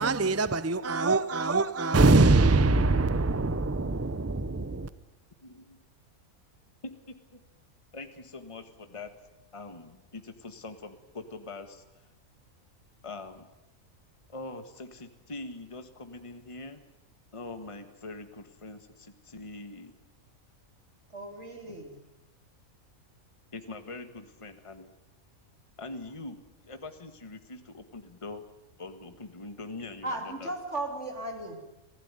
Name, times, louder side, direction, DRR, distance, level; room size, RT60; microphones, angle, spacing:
voice 1, 0.0-4.9, right 3 dB, 15° right, 0.5 m, -23 dB
voice 2, 5.4-5.8 7.1-7.4 7.9-9.1 9.5-12.1 13.0-13.5 14.3-16.8 17.3-19.9 21.7-21.8 23.5-24.9 25.8-26.4 26.6-28.4 28.8-30.5, left 3 dB, 25° left, 1.6 m, -43 dB
voice 3, 21.1-22.0 30.0-31.6, right 2 dB, 55° right, 3.5 m, -36 dB
27.5 x 16.0 x 9.8 m
omnidirectional pair, 1.4 m